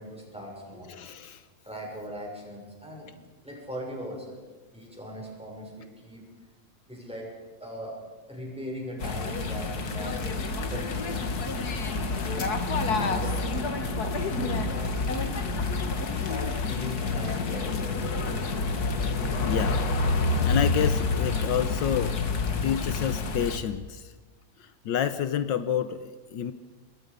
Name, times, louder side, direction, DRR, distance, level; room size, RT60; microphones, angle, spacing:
voice 1, 0.0-0.9 1.6-3.1 3.4-4.4 4.7-6.2 6.9-7.3 7.6-8.0 8.3-10.2 10.6-11.4 11.8-12.7 13.0-13.7 14.2-15.4 15.9-18.4, equal, 5° right, -1 dB, 6.4 m, -40 dB
voice 2, 0.9-1.4 19.4-19.8 20.4-22.2 22.6-24.1 24.6-26.5, left 9 dB, 75° left, 11 dB, 1.5 m, -29 dB
sound 1, 9.0-23.6, left 3 dB, 55° left, 2.1 m, -28 dB
26.5 x 21.5 x 5.3 m, 1.3 s
omnidirectional pair, 2.0 m